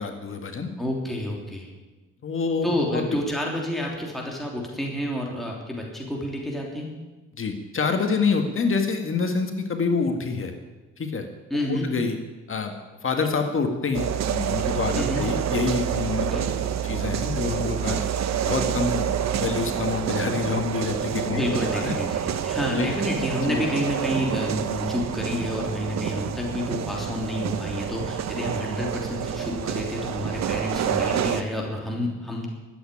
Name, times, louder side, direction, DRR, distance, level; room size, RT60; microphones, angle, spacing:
voice 1, 0.0-0.7 2.2-3.2 7.4-10.5 11.0-11.3 11.6-12.2 12.5-12.7 13.0-18.0 18.4-19.1 19.3-21.9 22.7-22.9 23.4-23.6, left 4 dB, 45° left, 5 dB, 1.8 m, -27 dB
voice 2, 0.8-1.7 2.6-6.9 11.5-11.9 14.9-15.3 16.2-16.5 21.3-32.5, left 1 dB, ahead, -2 dB, 3.1 m, -29 dB
sound 1, 13.9-31.4, right 9 dB, 60° right, 1.1 m, -28 dB
12.5 x 8.7 x 10.0 m, 1.2 s
cardioid pair, 90°, 30 cm